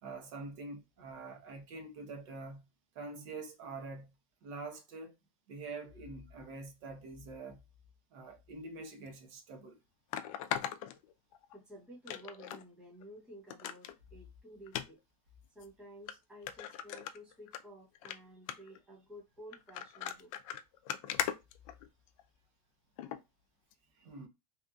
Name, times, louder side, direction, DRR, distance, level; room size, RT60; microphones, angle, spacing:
voice 1, 0.0-2.6 2.9-4.1 4.4-5.1 5.5-7.6 8.1-9.8 24.0-24.3, right 3 dB, 55° right, 0.8 m, -45 dB
sound 1, 9.1-9.2 10.1-11.6 12.1-12.6 13.0-13.1 13.5-13.9 14.7-14.9 15.6-15.7 16.1-16.2 16.5-17.6 17.9-18.2 18.5-18.8 19.5-22.2 23.0-23.2 23.7-23.8, left 10 dB, 65° left, 0.4 m, -39 dB
voice 2, 11.5-15.0 15.5-20.3, equal, 5° right, 0.8 m, -53 dB
2.9 x 2.5 x 2.3 m
supercardioid pair, 170°, 19 cm